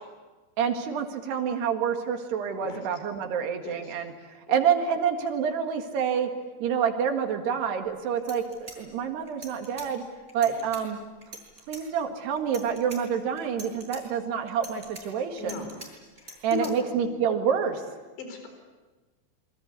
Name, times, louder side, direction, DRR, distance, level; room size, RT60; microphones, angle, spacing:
voice 1, 0.6-4.1 4.5-6.3 6.6-10.0 10.3-11.0 11.7-15.6 16.4-17.8, right 7 dB, 65° right, 5 dB, 3.8 m, -27 dB
voice 2, 3.6-3.9 4.5-4.6 10.5-10.6 15.4-15.7 16.2-16.7 18.2-18.5, left 7 dB, 70° left, 5 dB, 6.5 m, -37 dB
sound 1, 7.8-7.9 8.2-9.9 10.3-10.8 11.2-11.8 12.4-13.0 13.4-14.0 14.5-15.9 16.2-16.7, right 2 dB, 15° right, 7.8 m, -43 dB
27.5 x 23.5 x 8.4 m, 1.3 s
omnidirectional pair, 5.4 m